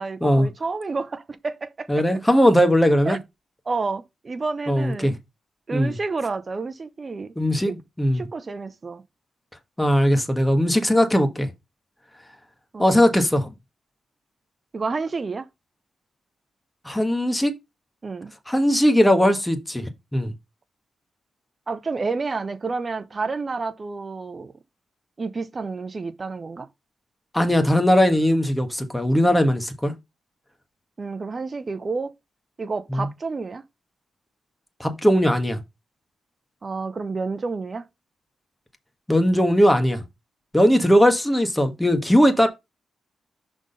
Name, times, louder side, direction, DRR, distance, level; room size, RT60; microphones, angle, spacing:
voice 1, 0.0-2.0 3.1-3.2 3.7-5.2 5.7-7.8 8.1-9.0 12.7-13.0 14.7-15.5 18.0-18.3 21.7-24.5 25.2-26.7 31.0-32.1 32.6-33.6 36.6-37.9, right 4 dB, 40° right, 0.8 m, -30 dB
voice 2, 1.9-3.2 4.7-5.1 5.7-5.9 7.4-8.2 9.8-11.5 12.8-13.5 16.8-17.5 18.5-20.3 27.3-29.9 32.9-33.1 34.8-35.6 39.1-40.0 40.5-42.5, equal, 10° left, 1.5 m, -19 dB
6.1 x 3.8 x 5.4 m
supercardioid pair, 55°, 0 cm